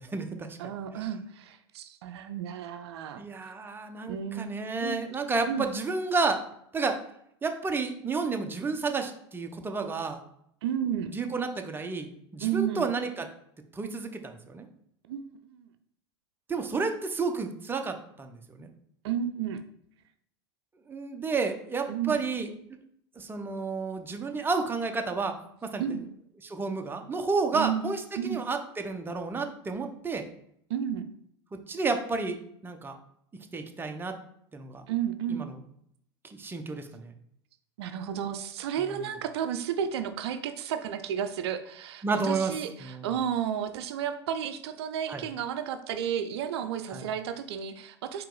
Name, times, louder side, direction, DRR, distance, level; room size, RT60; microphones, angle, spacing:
voice 1, 0.0-0.6 1.0-1.1 3.2-6.4 6.7-7.0 7.4-10.2 11.0-13.3 13.7-14.7 16.5-18.7 20.9-22.5 23.2-25.4 25.6-25.8 26.4-30.2 31.7-32.4 32.6-33.0 33.5-34.2 34.5-34.8 35.3-35.6 36.2-37.1 38.8-39.0 42.0-42.5 42.8-43.1 45.1-45.2 46.9-47.1, right 4 dB, 15° right, 5 dB, 0.7 m, -31 dB
voice 2, 0.6-3.2 4.1-5.1 5.5-5.7 10.6-11.1 12.4-12.9 15.1-15.7 19.0-19.6 21.9-22.2 25.8-26.1 27.5-27.8 28.2-28.4 30.7-31.1 34.9-35.4 37.8-48.3, right 9 dB, 70° right, 9 dB, 0.4 m, -32 dB
4.6 x 3.0 x 3.8 m, 0.71 s
hypercardioid pair, 90°, 14 cm